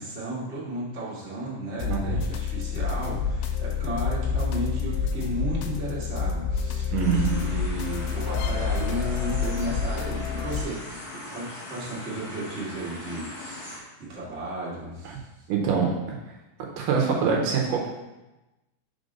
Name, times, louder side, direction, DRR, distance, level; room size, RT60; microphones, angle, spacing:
voice 1, 0.0-13.7 14.1-15.2, right 1 dB, 30° right, -7 dB, 1.2 m, -34 dB
sound 1, 1.8-10.6, left 6 dB, 80° left, 2.2 m, -28 dB
voice 2, 1.9-2.2 6.9-7.5 15.5-15.9 16.8-17.9, right 6 dB, 75° right, 0 dB, 2.3 m, -24 dB
sound 2, 7.0-13.8, left 1 dB, 45° left, 1.8 m, -40 dB
5.1 x 4.2 x 5.3 m, 1.0 s
omnidirectional pair, 4.1 m